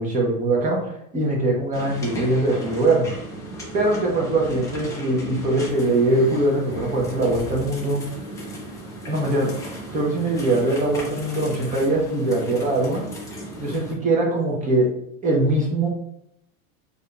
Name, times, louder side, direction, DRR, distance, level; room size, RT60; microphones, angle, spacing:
voice 1, 0.0-3.1 3.7-8.0 9.1-9.5 9.9-13.0 13.6-14.9 15.2-15.9, right 2 dB, 20° right, -1 dB, 0.9 m, -22 dB
sound 1, 1.7-13.9, right 1 dB, 10° left, 0.5 m, -36 dB
4.9 x 2.7 x 2.4 m, 0.78 s
supercardioid pair, 140°, 43 cm